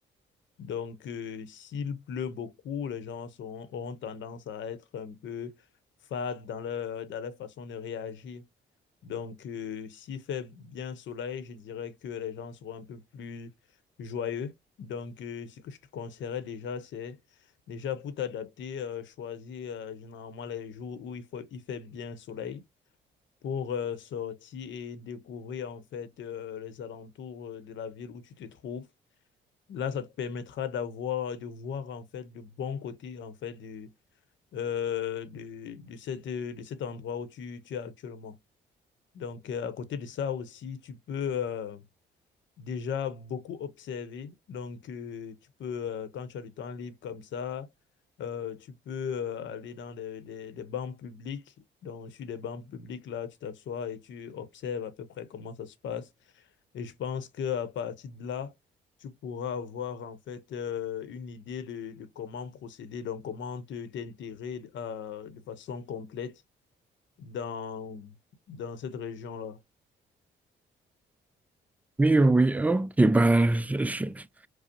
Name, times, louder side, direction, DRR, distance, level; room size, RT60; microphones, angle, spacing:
voice 1, 0.6-5.5 6.1-8.5 9.0-13.5 14.0-17.2 17.7-22.6 23.4-28.9 29.7-33.9 34.5-38.4 39.1-41.9 42.6-47.7 48.2-51.5 51.8-56.1 56.3-56.4 56.7-58.5 59.0-66.4 67.2-68.1 68.5-69.6, left 7 dB, 70° left, 0.7 m, -37 dB
voice 2, 72.0-74.5, right 2 dB, 10° right, 0.3 m, -22 dB
5.1 x 2.0 x 2.8 m
cardioid pair, 90°, 20 cm